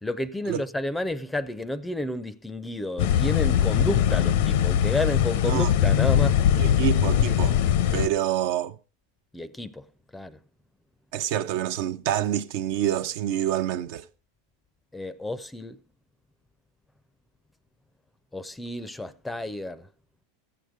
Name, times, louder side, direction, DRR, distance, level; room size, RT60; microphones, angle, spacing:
voice 1, 0.0-6.4 9.3-9.9 10.1-10.4 14.9-15.8 18.3-19.9, left 1 dB, 5° left, 0.6 m, -31 dB
sound 1, 3.0-8.1, left 10 dB, 70° left, 0.7 m, -21 dB
voice 2, 6.6-7.6 7.9-8.8 11.1-14.0, right 11 dB, 65° right, 0.7 m, -27 dB
13.5 x 8.0 x 5.0 m
supercardioid pair, 130°, 0 cm